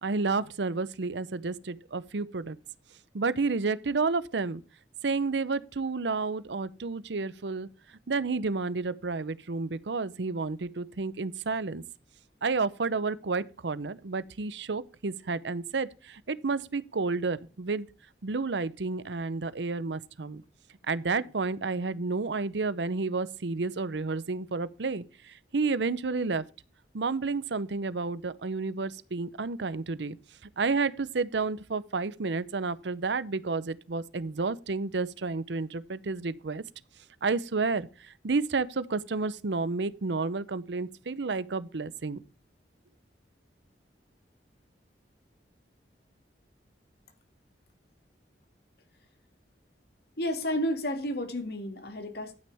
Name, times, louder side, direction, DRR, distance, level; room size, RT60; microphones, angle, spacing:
voice 1, 0.0-2.6 3.1-4.6 5.0-7.7 8.1-11.8 12.4-17.9 18.2-20.4 20.9-26.4 26.9-30.2 30.6-36.6 37.2-37.9 38.2-42.2, right 4 dB, 75° right, 0.7 m, -30 dB
voice 2, 50.2-52.3, equal, 65° left, 2.2 m, -31 dB
11.5 x 9.4 x 3.5 m
head